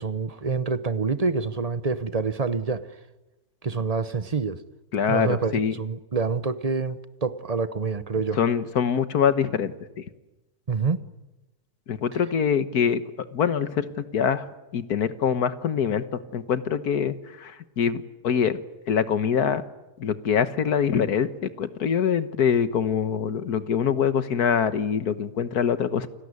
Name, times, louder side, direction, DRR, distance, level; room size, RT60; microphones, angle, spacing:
voice 1, 0.0-2.9 3.6-4.6 5.1-8.4 10.7-11.0, right 4 dB, 30° right, 0.8 m, -27 dB
voice 2, 4.9-5.7 8.4-9.7 11.9-13.0 13.3-14.5 14.7-18.6 18.9-19.6 20.0-26.1, left 7 dB, 70° left, 1.7 m, -24 dB
29.0 x 18.5 x 9.7 m
omnidirectional pair, 1.7 m